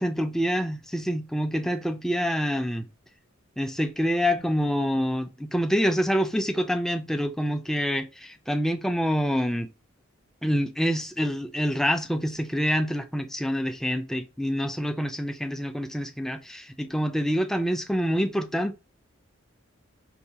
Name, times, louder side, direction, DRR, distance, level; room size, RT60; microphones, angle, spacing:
voice 1, 0.0-2.9 3.6-9.7 10.4-18.8, equal, ahead, 0.3 m, -26 dB
5.7 x 2.7 x 2.2 m
head